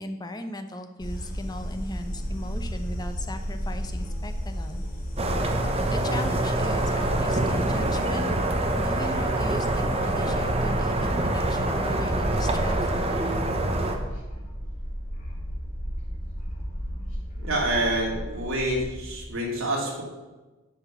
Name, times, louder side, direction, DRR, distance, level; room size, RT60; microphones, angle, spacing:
voice 1, 0.0-4.8 5.9-8.3 8.8-13.2, left 1 dB, 20° left, 7 dB, 0.8 m, -38 dB
sound 1, 1.0-19.3, equal, 40° left, 2.9 m, -33 dB
sound 2, 5.2-14.0, right 2 dB, 30° right, 1.0 m, -26 dB
voice 2, 17.4-20.0, right 1 dB, 70° right, -2 dB, 2.6 m, -27 dB
10.5 x 5.3 x 7.1 m, 1.2 s
head